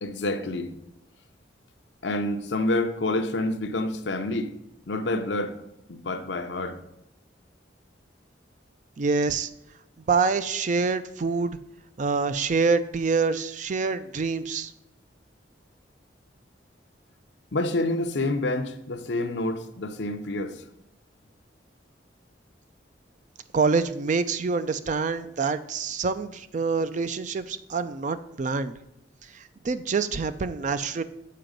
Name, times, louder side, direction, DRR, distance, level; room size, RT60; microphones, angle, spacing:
voice 1, 0.0-0.7 2.0-4.5 4.9-5.6 5.9-6.8 17.5-20.6, left 2 dB, 70° left, 0.7 m, -28 dB
voice 2, 9.0-9.5 10.1-11.6 12.0-14.7 23.5-28.7 29.3-31.0, right 4 dB, 40° right, 0.4 m, -26 dB
7.5 x 4.8 x 5.2 m
head